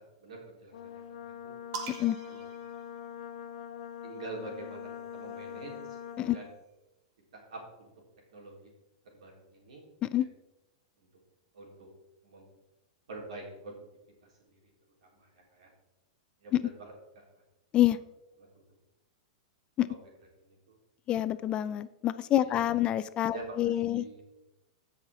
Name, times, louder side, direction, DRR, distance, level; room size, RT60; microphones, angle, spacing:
voice 1, 0.0-1.5 2.3-2.4 4.0-6.0 6.3-6.5 7.3-7.9 8.3-8.7 9.0-9.8 10.2-10.3 11.5-11.9 12.2-12.5 13.1-13.8 14.2-14.7 15.0-15.7 16.4-17.2 18.4-18.6 19.9-20.0 20.4-20.8 22.4-22.9 23.3-24.2, right 3 dB, 85° right, -1 dB, 3.5 m, -46 dB
Brass instrument, 0.7-6.6, left 8 dB, 80° left, 1.0 m, -43 dB
sound 1, 1.7-3.5 4.6-6.3, right 4 dB, 55° right, 1.7 m, -45 dB
voice 2, 21.1-24.2, left 13 dB, 25° left, 14 dB, 0.4 m, -27 dB
14.5 x 5.8 x 3.6 m, 0.96 s
supercardioid pair, 140°, 4 cm